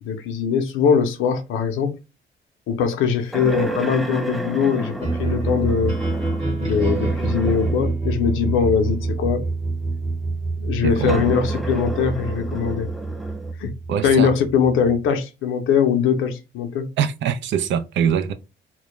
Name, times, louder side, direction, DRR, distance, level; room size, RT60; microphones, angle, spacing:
voice 1, 0.0-2.0 2.7-6.0 6.6-9.5 10.6-12.9 13.6-13.7 14.0-16.9, left 7 dB, 85° left, 0.6 m, -21 dB
sound 1, 3.3-8.0 8.7-8.8 10.9-13.5, right 1 dB, ahead, 0.3 m, -31 dB
sound 2, 5.0-15.1, right 3 dB, 25° right, 1.0 m, -26 dB
voice 2, 10.8-11.2 13.9-14.3 17.0-18.3, right 8 dB, 70° right, 0.4 m, -23 dB
2.2 x 2.0 x 2.9 m
cardioid pair, 90°, 20 cm